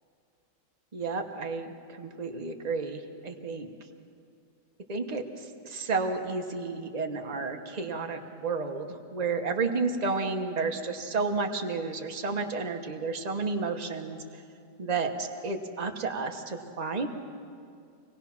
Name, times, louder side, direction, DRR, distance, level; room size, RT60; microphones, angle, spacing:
voice 1, 0.9-1.7 2.0-3.7 4.9-5.2 5.6-14.2 14.8-17.1, right 4 dB, 25° right, 4 dB, 1.1 m, -31 dB
26.0 x 17.5 x 6.0 m, 2.3 s
omnidirectional pair, 1.9 m